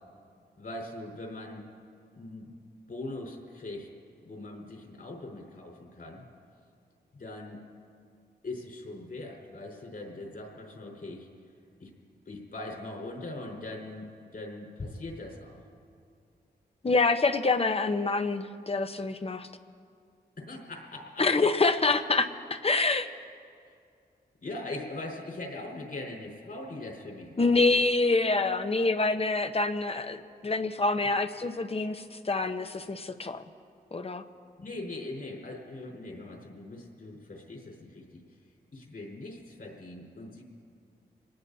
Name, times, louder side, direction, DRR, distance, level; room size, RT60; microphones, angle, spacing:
voice 1, 0.6-1.6 2.1-2.5 2.9-3.9 4.2-6.2 7.1-7.6 8.4-11.3 11.8-11.9 12.2-15.6 20.4-21.5 23.7-23.8 24.4-27.8 34.6-38.2 38.7-40.4, left 2 dB, 60° left, -1 dB, 4.7 m, -41 dB
voice 2, 16.8-19.5 21.2-23.1 27.4-33.4 33.9-34.2, left 3 dB, 35° left, 9 dB, 0.9 m, -26 dB
26.0 x 19.5 x 2.8 m, 2.3 s
cardioid pair, 60°, 17 cm